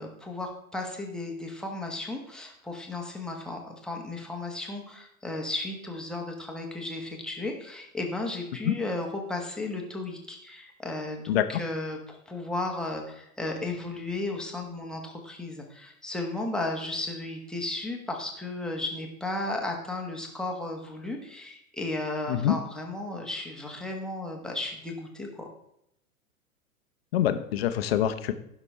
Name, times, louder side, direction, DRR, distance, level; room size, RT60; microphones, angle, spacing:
voice 1, 0.0-25.5, left 2 dB, ahead, 0 dB, 1.4 m, -34 dB
voice 2, 27.1-28.3, left 11 dB, 45° left, 9 dB, 0.9 m, -25 dB
15.5 x 6.1 x 3.3 m, 0.78 s
figure-of-eight pair, 110°, 44 cm